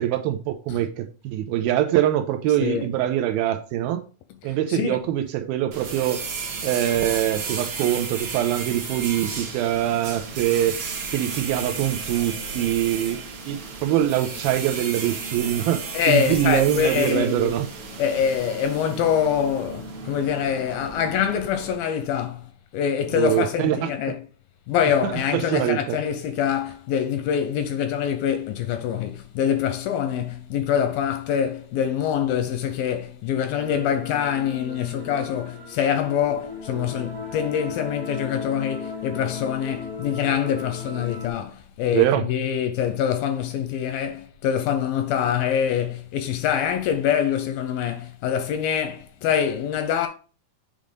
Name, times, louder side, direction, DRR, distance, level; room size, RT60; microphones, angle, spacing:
voice 1, 0.0-4.0 4.4-6.2 6.6-10.8 11.1-13.2 13.5-17.7 23.1-23.9 25.0-26.0 41.9-42.2, right 12 dB, 80° right, 2.3 m, -23 dB
voice 2, 4.5-5.0 15.9-17.5 18.0-24.2 24.7-50.1, left 8 dB, 80° left, 2.2 m, -25 dB
sound 1, 5.7-21.8, right 4 dB, 55° right, 2.3 m, -34 dB
sound 2, 33.5-41.3, left 4 dB, 5° left, 0.6 m, -37 dB
7.6 x 3.5 x 5.1 m
omnidirectional pair, 4.5 m